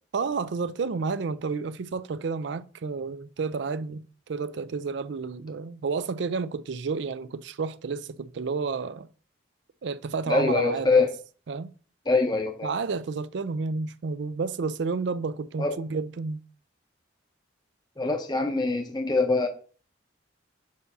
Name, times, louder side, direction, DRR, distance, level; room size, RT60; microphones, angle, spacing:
voice 1, 0.1-4.0 4.3-9.1 9.8-11.1 11.5-11.7 12.6-16.4, right 4 dB, 65° right, 0.4 m, -31 dB
voice 2, 10.3-11.1 12.1-12.7 15.6-15.7 18.0-19.5, left 3 dB, 20° left, 0.7 m, -24 dB
6.6 x 2.7 x 5.5 m
head